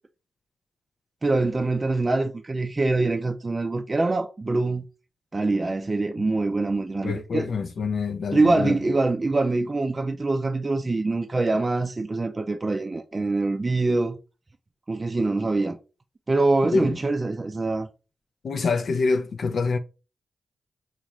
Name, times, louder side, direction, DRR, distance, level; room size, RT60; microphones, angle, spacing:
voice 1, 1.2-4.9 5.3-7.5 8.3-14.2 14.9-15.8 16.3-17.9, right 3 dB, 35° right, 0.4 m, -24 dB
voice 2, 7.0-8.8 16.7-17.0 18.4-19.8, left 4 dB, 70° left, 0.4 m, -26 dB
3.9 x 2.4 x 3.0 m
cardioid pair, 55°, 0 cm